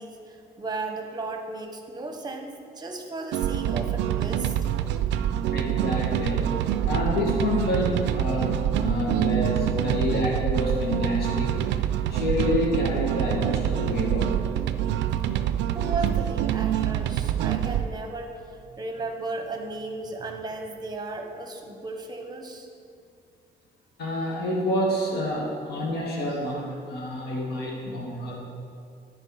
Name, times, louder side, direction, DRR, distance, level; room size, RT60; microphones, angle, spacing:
voice 1, 0.0-2.5 2.8-4.8 15.7-18.3 18.7-22.7, right 3 dB, 25° right, 4 dB, 1.0 m, -35 dB
sound 1, 3.3-17.9, right 10 dB, 85° right, 0.4 m, -26 dB
voice 2, 5.5-6.5 6.8-11.6 12.1-14.5 24.0-28.4, left 1 dB, 65° left, -2 dB, 1.7 m, -28 dB
11.0 x 4.5 x 4.8 m, 2.4 s
cardioid pair, 115°, 18 cm